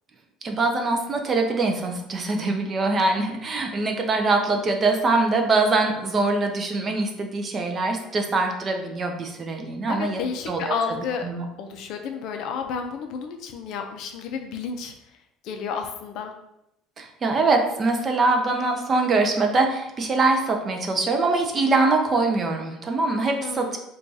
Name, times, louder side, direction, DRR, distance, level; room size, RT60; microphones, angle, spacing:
voice 1, 0.4-10.2 10.5-10.8 11.2-11.4 17.0-23.8, right 3 dB, 20° right, 4 dB, 0.4 m, -23 dB
voice 2, 9.9-11.3 11.6-14.9 15.4-16.3 23.4-23.8, left 6 dB, 50° left, 5 dB, 0.4 m, -31 dB
4.5 x 2.3 x 2.6 m, 0.84 s
cardioid pair, 170°, 0 cm